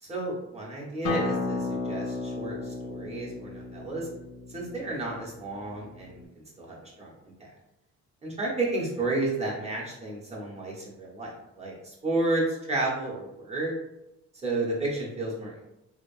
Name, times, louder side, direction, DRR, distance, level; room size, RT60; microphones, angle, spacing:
voice 1, 0.0-4.1 4.5-7.5 8.2-11.3 11.6-13.7 14.3-15.6, right 2 dB, 20° right, -4 dB, 1.0 m, -32 dB
Acoustic guitar, 1.0-6.2, left 3 dB, 90° left, 0.5 m, -34 dB
3.1 x 2.1 x 2.5 m, 0.90 s
cardioid pair, 90°, 30 cm